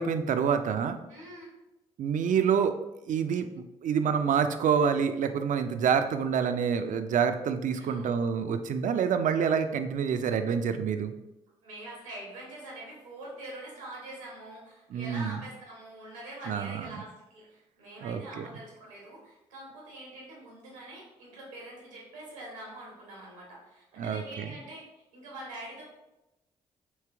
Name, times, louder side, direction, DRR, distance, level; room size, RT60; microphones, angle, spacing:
voice 1, 0.0-1.0 2.0-2.8 3.1-11.1 14.9-15.4 16.5-17.0 18.0-18.5 24.0-24.5, right 7 dB, 55° right, 9 dB, 0.5 m, -27 dB
voice 2, 1.1-1.5 7.8-8.1 11.6-24.8 25.1-25.8, right 1 dB, 90° right, -4 dB, 1.3 m, -44 dB
3.3 x 3.2 x 4.4 m, 0.97 s
hypercardioid pair, 45°, 16 cm